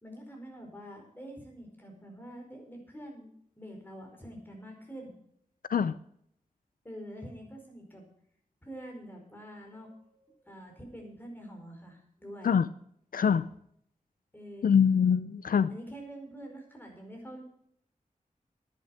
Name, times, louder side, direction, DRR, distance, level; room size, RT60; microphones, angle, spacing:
voice 1, 0.0-3.3 3.6-5.1 6.8-8.0 8.6-12.6 14.3-14.8 15.7-17.4, equal, 15° left, 1 dB, 4.8 m, -46 dB
voice 2, 13.1-13.5 14.6-15.7, left 7 dB, 80° left, 15 dB, 0.5 m, -24 dB
10.5 x 10.5 x 6.4 m, 0.68 s
wide cardioid pair, 100°, 14 cm